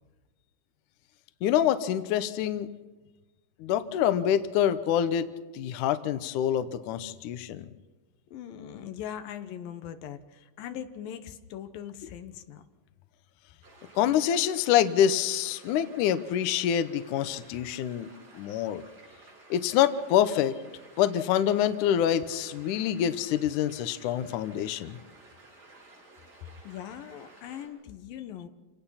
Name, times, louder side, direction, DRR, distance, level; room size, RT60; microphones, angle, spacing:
voice 1, 1.4-2.7 3.6-5.3 5.5-7.7 14.0-18.1 18.4-18.8 19.5-20.5 21.0-25.0, left 10 dB, 70° left, 12 dB, 2.3 m, -26 dB
voice 2, 8.3-10.2 10.6-12.6 26.6-28.5, left 10 dB, 90° left, 9 dB, 2.9 m, -40 dB
sound 1, 13.6-27.7, right 2 dB, 85° right, 8.9 m, -54 dB
27.5 x 18.5 x 5.7 m, 1.3 s
omnidirectional pair, 3.9 m